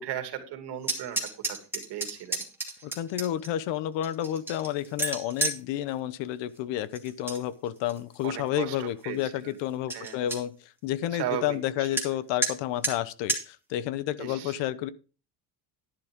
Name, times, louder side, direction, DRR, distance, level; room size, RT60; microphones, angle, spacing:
voice 1, 0.0-2.4 8.2-9.6 9.9-10.3 11.1-11.9 14.2-14.6, right 11 dB, 60° right, 7 dB, 2.5 m, -37 dB
sound 1, 0.8-3.5 4.0-5.6 6.9-7.4 7.8-8.2 8.8-8.9 9.2-9.3 9.6-9.7 9.9-10.4 12.0-12.1 12.4-12.5 12.8-12.9 13.3-13.4, right 1 dB, 5° right, 2.7 m, -31 dB
voice 2, 2.8-14.9, left 12 dB, 70° left, 17 dB, 1.0 m, -31 dB
11.0 x 11.0 x 3.6 m, 0.35 s
cardioid pair, 130°, 45 cm